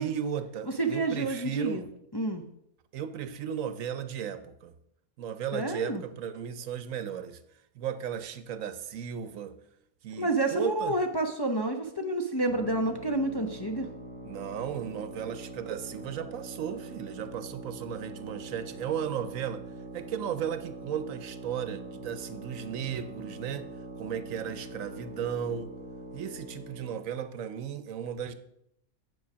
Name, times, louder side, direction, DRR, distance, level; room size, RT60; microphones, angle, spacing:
voice 1, 0.0-1.9 2.9-4.7 5.2-7.4 7.7-9.6 10.0-11.0 14.2-19.6 19.9-23.7 24.0-25.7 26.1-28.3, right 8 dB, 70° right, 11 dB, 1.1 m, -35 dB
voice 2, 0.8-1.9 2.1-2.4 5.5-6.0 10.2-13.9, right 2 dB, 25° left, 3 dB, 0.6 m, -29 dB
sound 1, 12.5-27.0, right 2 dB, 55° left, 2.7 m, -43 dB
8.4 x 7.1 x 6.1 m, 0.78 s
omnidirectional pair, 1.5 m